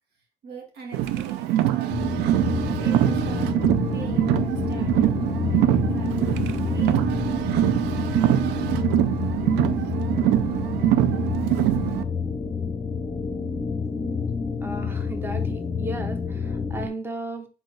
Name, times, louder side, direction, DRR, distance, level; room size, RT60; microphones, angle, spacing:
voice 1, 0.4-2.1 2.6-8.2, right 4 dB, 70° right, 1 dB, 1.8 m, -43 dB
Car, 0.9-12.0, right 13 dB, 90° right, 0.4 m, -23 dB
sound 1, 1.9-9.9, left 13 dB, 80° left, 0.4 m, -39 dB
sound 2, 1.9-16.9, left 5 dB, 25° left, 0.7 m, -29 dB
voice 2, 14.6-17.5, right 2 dB, 15° right, 6 dB, 0.8 m, -35 dB
4.3 x 3.8 x 3.2 m, 0.35 s
cardioid pair, 110°, 17 cm